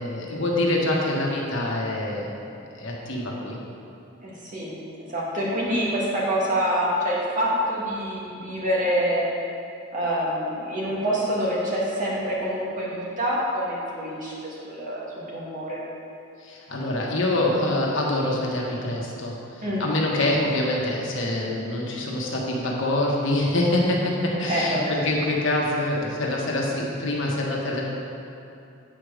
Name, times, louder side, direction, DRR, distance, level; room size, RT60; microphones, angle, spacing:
voice 1, 0.0-2.3 2.8-3.6 16.4-27.9, left 1 dB, 65° left, -3 dB, 1.4 m, -25 dB
voice 2, 4.2-4.7 5.1-9.3 9.9-15.0 15.3-15.8 19.6-19.8 24.4-24.9, equal, 40° right, -6 dB, 2.1 m, -26 dB
8.6 x 5.1 x 6.4 m, 2.7 s
head